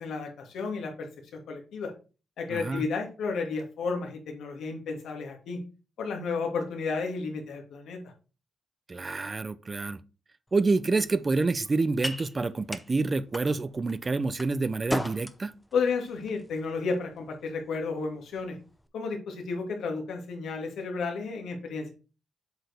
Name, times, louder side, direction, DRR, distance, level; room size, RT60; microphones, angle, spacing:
voice 1, 0.0-1.9 2.4-5.6 6.0-8.0 15.7-18.6 18.9-21.9, left 4 dB, 80° left, 1.9 m, -32 dB
voice 2, 2.5-2.8 8.9-10.0 10.5-15.5, right 3 dB, 30° right, 0.5 m, -28 dB
sound 1, 10.5-18.9, left 1 dB, 10° left, 0.7 m, -41 dB
7.8 x 4.5 x 3.4 m
cardioid pair, 110°, 0 cm